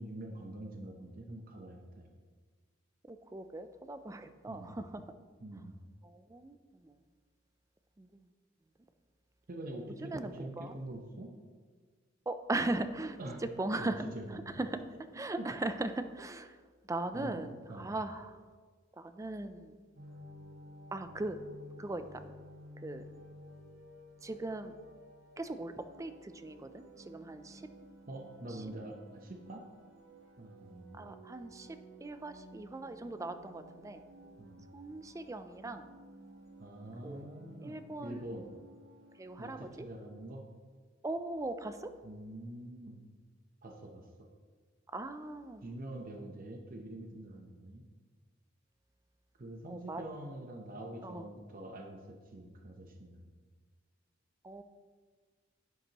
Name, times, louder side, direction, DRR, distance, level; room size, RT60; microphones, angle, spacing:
voice 1, 0.0-2.1 4.5-4.7 5.4-5.7 9.5-11.3 13.2-13.4 13.8-14.4 15.4-15.5 17.1-17.4 17.7-17.9 28.1-29.7 30.4-31.1 34.4-34.7 36.6-38.5 39.4-40.4 42.0-43.0 43.6-44.1 45.6-47.9 49.4-53.2, right 1 dB, 45° right, 2 dB, 0.8 m, -45 dB
voice 2, 3.0-5.0 5.5-5.6 6.0-7.0 8.0-8.2 10.0-10.7 12.3-13.2 13.6-14.8 15.1-16.6 16.9-18.4 19.0-19.8 20.9-21.4 21.8-22.2 22.8-23.0 24.2-24.7 25.4-27.7 28.5-28.6 30.9-34.0 34.7-35.9 37.0-37.3 37.6-38.5 39.2-39.9 41.0-41.9 44.9-45.6 49.7-50.0 51.0-51.2 54.4-54.6, right 2 dB, 15° right, 10 dB, 0.4 m, -39 dB
sound 1, 19.9-39.7, equal, 80° right, 1.3 m, -55 dB
10.5 x 8.1 x 3.0 m, 1.5 s
head